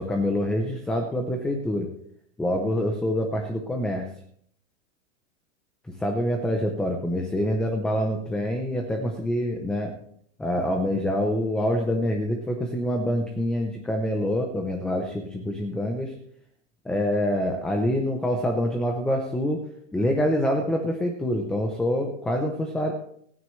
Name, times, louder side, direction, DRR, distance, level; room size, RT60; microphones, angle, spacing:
voice 1, 0.0-1.9 2.4-4.0 6.0-9.9 10.4-16.1 16.8-19.6 19.9-22.9, equal, ahead, 3 dB, 0.5 m, -26 dB
28.0 x 9.6 x 3.2 m, 0.65 s
supercardioid pair, 165°, 39 cm